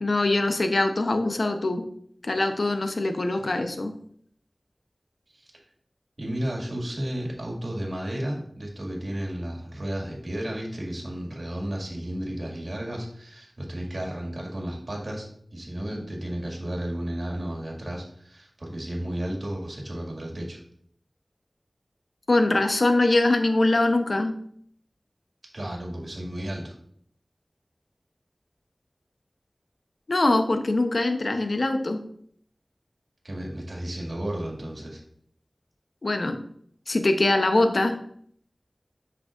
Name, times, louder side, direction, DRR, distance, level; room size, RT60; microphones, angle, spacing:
voice 1, 0.0-1.8 2.2-3.9 22.3-24.4 30.1-32.0 36.0-36.4 36.9-38.0, left 2 dB, 75° left, 6 dB, 0.7 m, -23 dB
voice 2, 6.2-15.3 15.5-20.6 25.5-26.7 33.2-35.0, right 1 dB, 65° right, -1 dB, 2.1 m, -33 dB
7.9 x 6.0 x 2.5 m, 0.63 s
wide cardioid pair, 55°, 0 cm